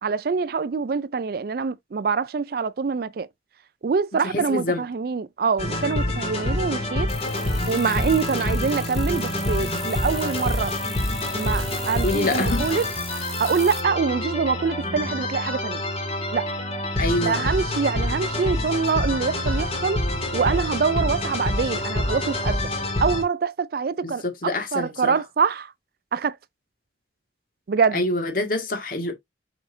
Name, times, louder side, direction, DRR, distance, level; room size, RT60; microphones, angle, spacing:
voice 1, 0.0-3.3 3.8-7.1 7.7-10.7 11.3-12.8 13.4-15.8 16.3-16.5 17.2-20.0 20.3-22.7 23.0-25.7 26.1-26.4 27.7-28.0, right 5 dB, 50° right, 0.4 m, -25 dB
voice 2, 4.2-4.8 7.8-8.0 12.0-12.6 17.0-17.5 24.0-25.2 27.9-29.1, left 2 dB, 50° left, 1.9 m, -26 dB
sound 1, 5.6-23.2, left 1 dB, 30° left, 2.3 m, -26 dB
sound 2, 7.1-13.8, right 1 dB, ahead, 1.9 m, -39 dB
7.0 x 5.7 x 2.6 m
head